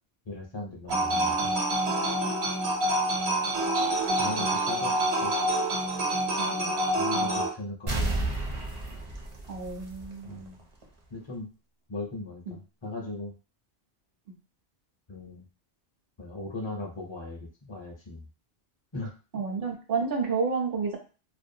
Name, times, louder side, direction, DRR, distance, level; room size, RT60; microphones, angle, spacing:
voice 1, 0.3-1.5 4.1-4.9 5.2-5.3 6.9-8.0 10.2-10.6 11.1-11.5 11.9-13.3 15.1-15.4 16.2-18.3 18.9-19.1, left 2 dB, 35° left, -1 dB, 0.5 m, -38 dB
sound 1, 0.9-7.5, right 1 dB, 75° right, 1.1 m, -27 dB
voice 2, 6.4-6.7 9.5-10.6 12.5-12.6 19.3-21.0, right 5 dB, 60° right, 1 dB, 0.8 m, -30 dB
sound 2, 7.9-10.5 10.8-10.9, right 2 dB, 40° right, 0.5 m, -31 dB
2.5 x 2.0 x 2.7 m, 0.35 s
omnidirectional pair, 1.1 m